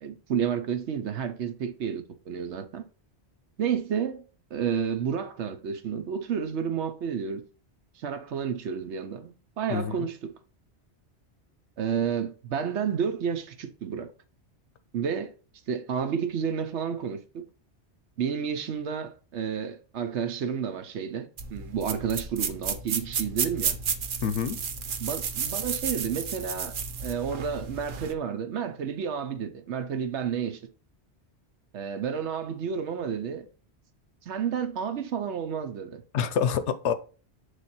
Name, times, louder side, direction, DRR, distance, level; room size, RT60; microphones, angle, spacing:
voice 1, 0.0-2.8 3.6-4.2 4.5-7.4 8.0-10.3 11.8-14.1 14.9-15.3 15.7-17.4 18.2-23.8 25.0-26.7 27.0-30.6 31.7-33.5 34.3-36.0, right 7 dB, 80° right, 1.1 m, -31 dB
voice 2, 9.7-10.1 24.2-24.6 36.1-36.9, left 7 dB, 90° left, 1.0 m, -27 dB
sound 1, 21.4-28.1, right 6 dB, 55° right, 0.8 m, -32 dB
7.2 x 3.3 x 4.2 m
omnidirectional pair, 1.1 m